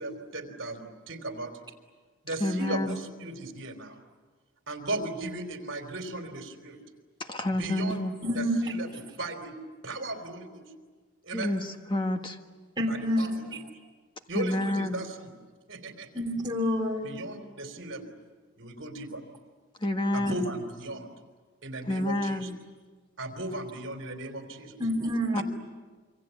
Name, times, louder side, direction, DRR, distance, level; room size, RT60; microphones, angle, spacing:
voice 1, 0.0-1.7 2.2-4.0 4.7-6.8 7.5-8.0 8.3-9.6 9.8-10.6 11.2-11.5 12.9-13.5 14.3-15.3 15.7-16.1 17.0-18.1 18.6-19.2 20.1-21.1 21.6-22.5 23.2-24.8 25.3-25.4, right 2 dB, 60° right, 6 dB, 3.6 m, -37 dB
voice 2, 2.4-3.0 7.2-8.1 11.3-12.4 14.3-15.0 19.8-20.5 21.9-22.6 25.3-25.4, left 1 dB, 25° left, 5 dB, 1.6 m, -29 dB
voice 3, 8.2-8.7 12.8-13.3 16.1-17.0 24.8-25.4, equal, 20° right, -1 dB, 3.3 m, -27 dB
27.0 x 25.0 x 8.3 m, 1.4 s
head